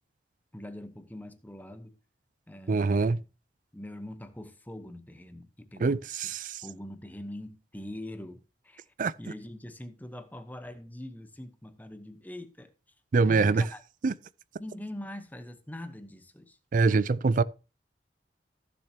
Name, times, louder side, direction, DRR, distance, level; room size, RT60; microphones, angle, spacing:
voice 1, 0.5-2.0 2.5-3.2 3.7-6.0 6.6-8.8 9.2-12.7 13.2-13.8 14.6-16.6 16.8-17.0, left 1 dB, 10° left, 0.9 m, -43 dB
voice 2, 2.7-3.2 5.8-6.6 9.0-9.1 13.1-13.7 14.0-14.1 16.7-17.4, right 4 dB, 50° right, 0.4 m, -24 dB
15.0 x 6.9 x 2.8 m
head